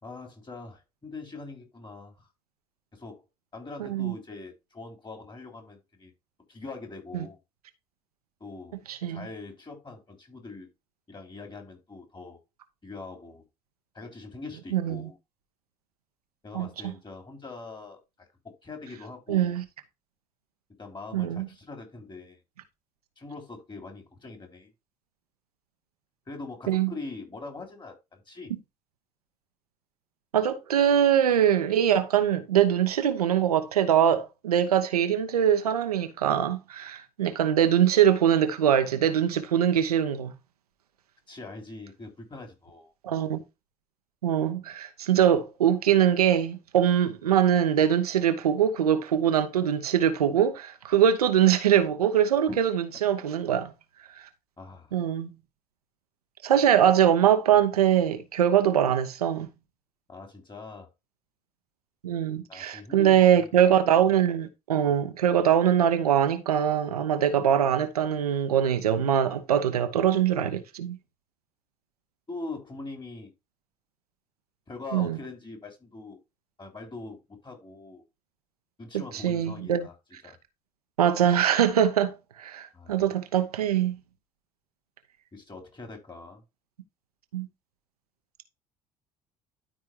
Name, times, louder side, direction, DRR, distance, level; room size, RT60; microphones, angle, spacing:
voice 1, 0.0-2.3 2.9-3.2 3.5-6.1 6.5-7.4 8.4-8.8 9.1-10.7 11.1-12.4 12.8-13.4 13.9-15.2 16.4-18.0 18.4-19.6 20.8-22.4 23.2-24.7 26.3-28.5 41.3-42.9 52.5-52.6 54.6-54.9 60.1-60.9 62.5-63.5 72.3-73.3 74.7-76.2 76.6-78.0 78.8-79.9 80.2-80.4 82.7-83.0 85.3-86.4, left 3 dB, 25° left, 3.5 m, -42 dB
voice 2, 8.9-9.2 14.7-15.1 16.5-16.7 19.3-19.6 21.1-21.5 26.7-26.9 30.3-40.3 43.0-43.4 44.2-53.7 54.9-55.3 56.4-59.5 62.0-71.0 74.9-75.2 79.1-79.9 81.0-84.0 87.3-87.5, right 9 dB, 85° right, 0.8 m, -23 dB
12.5 x 4.6 x 2.9 m
figure-of-eight pair, 55°, 19 cm